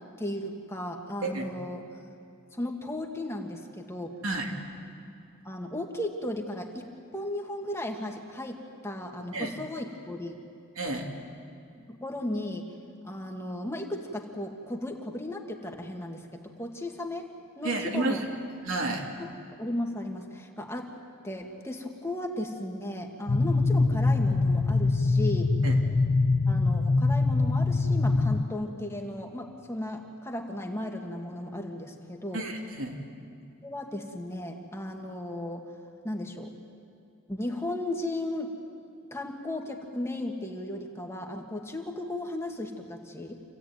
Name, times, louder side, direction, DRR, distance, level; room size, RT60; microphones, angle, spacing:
voice 1, 0.2-1.8 2.5-4.2 5.4-6.9 7.1-10.4 11.9-12.7 13.0-18.2 19.2-19.3 19.6-21.0 21.2-25.6 26.5-32.4 33.6-35.6 36.0-36.5 37.3-38.6 39.1-43.4, left 1 dB, 15° left, 2 dB, 1.8 m, -35 dB
voice 2, 10.7-11.1 17.6-18.2 18.6-19.1 25.6-25.8 32.3-33.0, right 2 dB, 75° right, 0 dB, 3.2 m, -31 dB
sound 1, 23.3-28.4, left 3 dB, 50° left, 0.6 m, -23 dB
28.0 x 16.0 x 9.3 m, 2.5 s
head